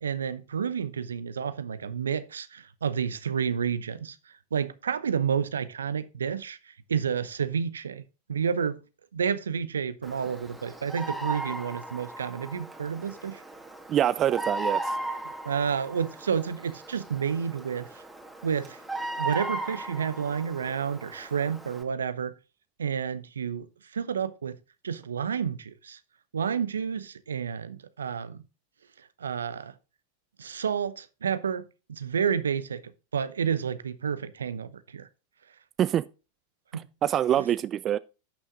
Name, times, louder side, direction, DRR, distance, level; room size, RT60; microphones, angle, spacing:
voice 1, 0.0-4.2 4.5-8.0 8.3-8.8 9.1-13.4 15.4-17.9 18.4-18.8 19.2-22.3 22.8-23.7 23.9-24.6 24.8-26.0 26.3-28.4 29.2-29.7 30.4-32.8 33.1-35.1 36.7-36.8, right 7 dB, 75° right, 0.8 m, -30 dB
Bird vocalization bird call bird song, 10.0-21.8, right 2 dB, 5° right, 2.1 m, -37 dB
voice 2, 13.9-15.0 35.8-36.1 36.7-38.0, right 11 dB, 30° right, 0.4 m, -25 dB
11.5 x 6.3 x 3.7 m
figure-of-eight pair, 90°, 0 cm